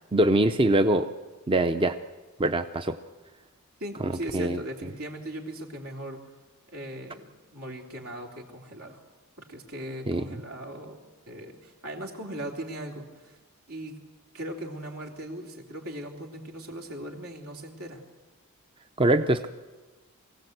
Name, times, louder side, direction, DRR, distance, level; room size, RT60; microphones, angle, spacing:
voice 1, 0.1-1.1 1.5-2.0 2.4-3.0 4.0-4.6 10.1-10.3 19.0-19.5, right 1 dB, 25° right, 8 dB, 0.6 m, -23 dB
voice 2, 3.8-6.2 6.7-9.0 9.4-11.0 11.3-13.4 13.7-14.0 14.3-18.0, right 1 dB, 75° right, 1 dB, 3.3 m, -39 dB
23.5 x 16.5 x 8.1 m, 1.3 s
head